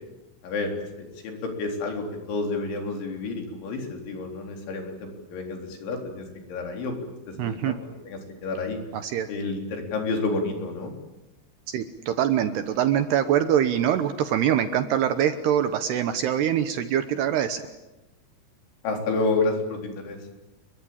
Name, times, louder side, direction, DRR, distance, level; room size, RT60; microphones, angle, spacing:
voice 1, 0.4-7.0 7.3-7.8 8.1-8.8 9.3-10.9 18.8-20.2, left 3 dB, 70° left, 3 dB, 6.2 m, -30 dB
voice 2, 7.4-7.7 8.9-9.3 11.7-17.6, right 10 dB, 70° right, 10 dB, 2.7 m, -24 dB
29.5 x 23.0 x 8.8 m, 1.0 s
omnidirectional pair, 5.7 m